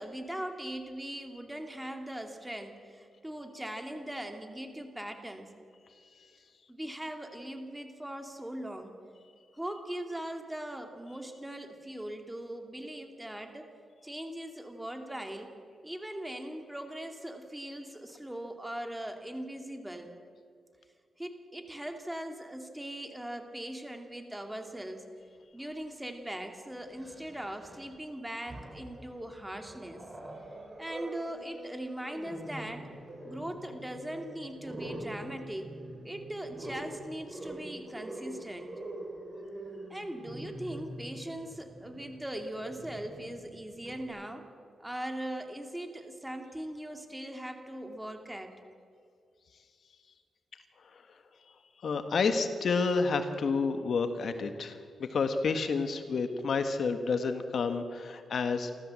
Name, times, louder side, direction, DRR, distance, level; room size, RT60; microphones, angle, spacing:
voice 1, 0.0-5.5 6.7-9.0 9.5-13.7 14.0-15.5 15.8-20.1 21.2-25.1 25.5-30.0 30.8-32.9 33.2-35.7 36.0-38.7 39.9-44.5 44.8-48.5, right 1 dB, 10° right, 5 dB, 2.5 m, -40 dB
Growling, 25.8-25.9 26.9-27.9 28.3-29.0 29.5-44.0, right 1 dB, 25° right, 5.2 m, -45 dB
sound 1, 31.1-31.3 32.1-32.3 33.1-33.3 34.1-34.3 35.1-35.3 36.1-36.4, right 2 dB, 50° right, 6.9 m, -49 dB
voice 2, 51.8-58.7, left 4 dB, 65° left, 8 dB, 1.4 m, -29 dB
27.5 x 14.0 x 7.6 m, 2.3 s
cardioid pair, 90°, 0 cm